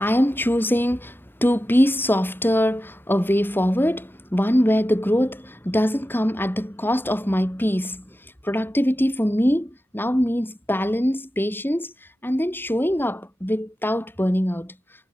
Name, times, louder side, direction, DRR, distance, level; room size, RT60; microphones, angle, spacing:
voice 1, 0.0-8.2 8.4-11.9 12.2-14.8, equal, 10° left, 3.7 m, -22 dB
head